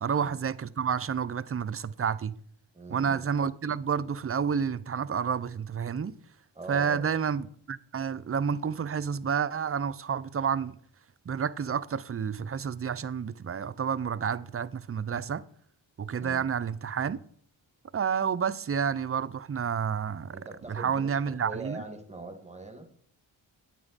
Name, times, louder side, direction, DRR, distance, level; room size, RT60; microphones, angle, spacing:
voice 1, 0.0-2.3 2.9-6.1 6.7-10.8 11.3-15.4 16.0-17.2 17.9-20.4 20.7-21.8, right 7 dB, 30° right, 0.5 m, -30 dB
voice 2, 2.7-3.3 6.6-7.2 16.2-16.4 20.3-21.2 21.4-22.9, right 3 dB, 15° right, 1.7 m, -42 dB
9.3 x 9.0 x 4.0 m
cardioid pair, 55°, 50 cm